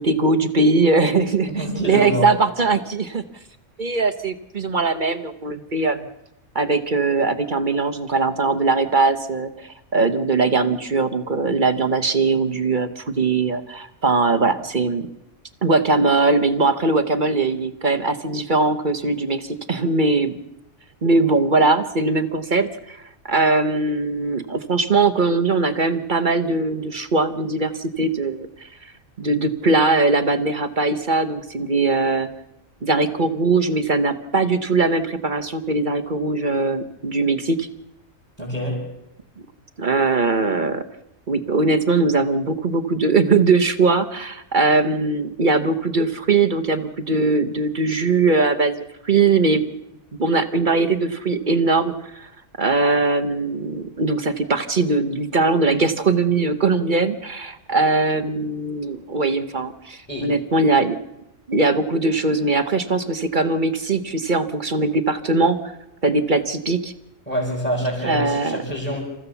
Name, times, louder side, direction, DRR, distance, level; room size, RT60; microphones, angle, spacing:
voice 1, 0.0-3.2 3.8-6.1 6.5-15.1 15.6-20.3 21.0-28.9 29.2-32.3 32.8-37.7 39.8-40.8 41.3-49.6 50.2-52.3 52.6-61.0 61.5-65.6 66.0-66.9 68.0-68.6, right 3 dB, 40° right, 9 dB, 1.1 m, -20 dB
voice 2, 1.5-2.3 38.4-38.9 60.1-60.3 67.3-69.0, equal, 5° left, -6 dB, 6.5 m, -26 dB
27.5 x 14.5 x 7.0 m, 0.87 s
omnidirectional pair, 1.4 m